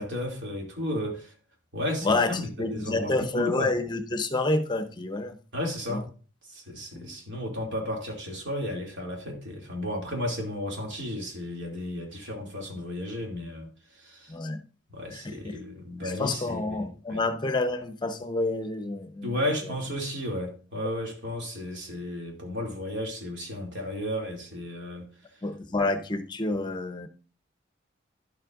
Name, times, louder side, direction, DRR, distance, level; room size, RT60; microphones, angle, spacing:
voice 1, 0.0-1.3 1.7-3.7 5.5-6.1 6.5-13.7 14.0-14.3 14.9-17.2 19.2-25.1, left 1 dB, 70° right, 2.5 m, -33 dB
voice 2, 2.0-5.4 5.9-6.0 6.9-7.1 14.3-14.6 15.1-15.6 16.0-19.4 19.6-19.7 25.4-27.1, left 2 dB, 25° left, 0.8 m, -29 dB
11.5 x 7.4 x 2.5 m
head